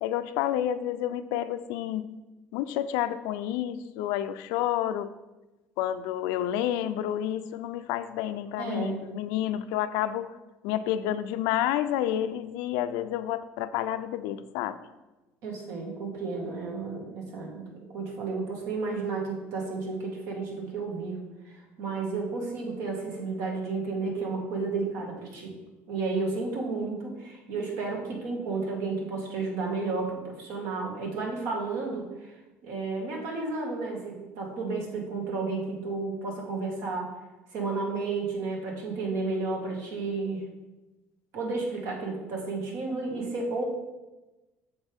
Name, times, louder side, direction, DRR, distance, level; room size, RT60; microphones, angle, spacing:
voice 1, 0.0-2.1 2.5-5.1 5.8-10.4 10.6-14.8, left 11 dB, 85° left, 12 dB, 0.5 m, -29 dB
voice 2, 8.6-9.0 15.4-17.7 17.9-25.5 25.9-32.4 32.6-37.1 37.5-40.4 41.3-43.6, right 3 dB, 65° right, 0 dB, 1.9 m, -32 dB
8.1 x 6.5 x 3.6 m, 1.1 s
cardioid pair, 145°, 5 cm